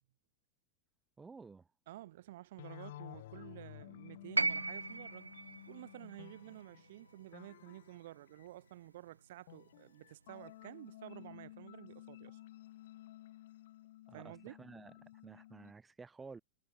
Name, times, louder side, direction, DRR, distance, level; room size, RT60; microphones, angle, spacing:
voice 1, 1.2-1.7 14.1-16.4, right 4 dB, 15° right, 1.4 m, -53 dB
voice 2, 1.9-5.3 5.7-12.4 14.1-14.6, right 15 dB, 55° right, 1.8 m, -51 dB
sound 1, 2.6-8.7 9.5-15.7, left 15 dB, 55° left, 0.6 m, -54 dB
sound 2, 4.4-8.5 9.7-9.8, right 3 dB, 80° right, 0.5 m, -38 dB
figure-of-eight pair, 90°, 0 cm